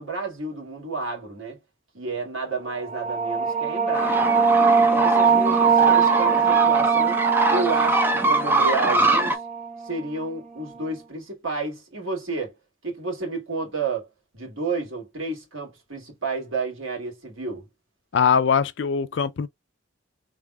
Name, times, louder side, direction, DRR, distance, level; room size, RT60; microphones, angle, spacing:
voice 1, 0.0-1.6 1.9-4.3 4.8-7.2 7.5-9.4 9.8-12.5 12.8-14.1 14.3-17.7, right 3 dB, 85° right, 2.2 m, -31 dB
sound 1, 2.7-10.0, right 6 dB, 30° right, 0.9 m, -21 dB
sound 2, 3.9-9.4, right 2 dB, 10° right, 0.5 m, -23 dB
voice 2, 18.1-19.5, left 6 dB, 60° left, 0.4 m, -21 dB
3.6 x 3.4 x 2.2 m
head